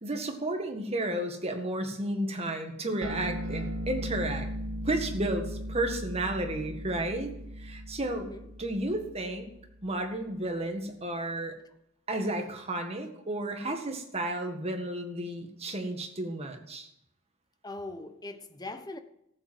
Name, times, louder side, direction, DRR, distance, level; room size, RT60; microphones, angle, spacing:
voice 1, 0.0-4.5 4.8-7.3 7.6-8.3 8.6-9.5 9.8-11.5 12.1-16.9, right 1 dB, 30° right, 1.8 m, -32 dB
sound 1, 3.0-9.8, equal, 80° right, 2.5 m, -38 dB
voice 2, 8.1-8.5 17.6-19.0, left 2 dB, 20° left, 1.0 m, -41 dB
14.0 x 7.9 x 7.6 m
head